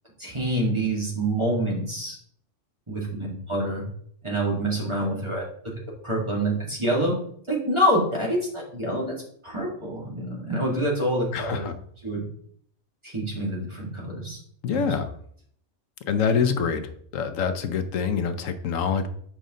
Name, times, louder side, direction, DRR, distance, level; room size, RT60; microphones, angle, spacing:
voice 1, 0.2-2.2 2.9-3.9 4.2-5.5 6.0-7.1 7.5-9.1 9.4-11.7 12.0-12.2 13.0-14.4 14.7-14.9, right 1 dB, 20° right, -4 dB, 2.2 m, -26 dB
voice 2, 11.3-11.7 14.6-15.1 16.1-16.8 17.1-19.1, left 6 dB, 80° left, 9 dB, 1.1 m, -25 dB
7.7 x 5.2 x 3.7 m, 0.63 s
omnidirectional pair, 1.3 m